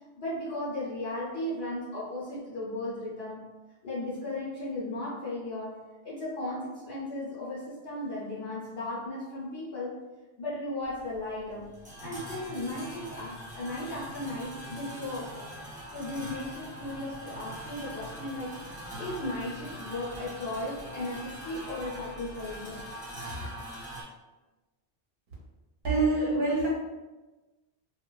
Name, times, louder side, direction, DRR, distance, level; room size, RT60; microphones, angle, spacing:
voice 1, 0.2-3.4 3.8-5.8 6.0-10.0 10.4-11.7 12.0-15.5 15.9-18.6 19.0-22.8 23.4-23.5, left 1 dB, 70° left, -8 dB, 0.9 m, -36 dB
sound 1, 10.8-24.0, equal, 10° right, 0.7 m, -42 dB
voice 2, 25.8-26.7, right 3 dB, 60° right, -5 dB, 0.7 m, -25 dB
2.8 x 2.2 x 2.3 m, 1.2 s
omnidirectional pair, 1.1 m